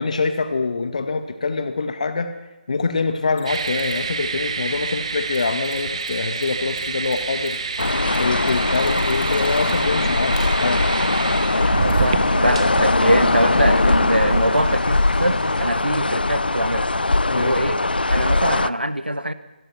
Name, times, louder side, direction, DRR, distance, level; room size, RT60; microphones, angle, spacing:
voice 1, 0.0-2.3 2.7-7.6 8.2-10.8 17.3-17.6, left 4 dB, 45° left, 8 dB, 2.0 m, -24 dB
Mechanisms, 3.3-4.1 5.3-5.4 5.6-5.7 6.0-6.1 6.4-9.9 10.3-10.4 11.9-12.0, left 9 dB, 15° left, 3.9 m, -44 dB
sound 1, 3.5-15.7, right 5 dB, 35° right, 1.7 m, -28 dB
sound 2, 7.8-18.7, left 2 dB, 70° left, 0.6 m, -20 dB
voice 2, 11.8-16.9 17.3-17.8 18.1-19.3, right 1 dB, 85° right, 12 dB, 1.6 m, -23 dB
26.0 x 18.0 x 5.8 m, 1.1 s
figure-of-eight pair, 150°, 5 cm